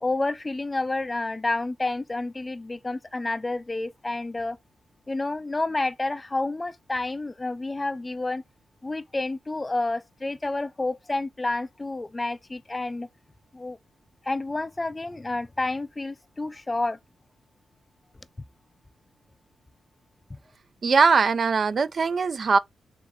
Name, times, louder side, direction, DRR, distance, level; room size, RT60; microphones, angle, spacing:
voice 1, 0.0-4.6 5.1-8.4 8.8-13.1 13.5-13.8 14.2-17.0 20.3-20.4, left 2 dB, 20° left, 0.4 m, -29 dB
voice 2, 20.8-22.6, right 4 dB, 50° right, 0.4 m, -21 dB
4.2 x 3.2 x 3.6 m
cardioid pair, 85°, 0 cm